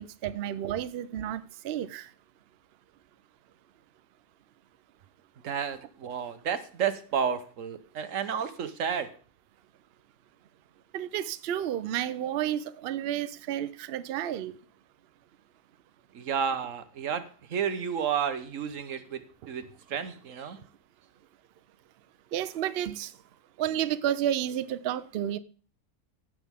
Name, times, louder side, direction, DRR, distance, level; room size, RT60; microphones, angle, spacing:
voice 1, 0.0-2.1 10.9-14.6 22.3-23.1 23.6-25.4, right 11 dB, 75° right, 0.5 m, -31 dB
voice 2, 5.4-9.1 16.1-20.6, right 7 dB, 60° right, 1.2 m, -31 dB
16.0 x 6.2 x 3.6 m
omnidirectional pair, 1.6 m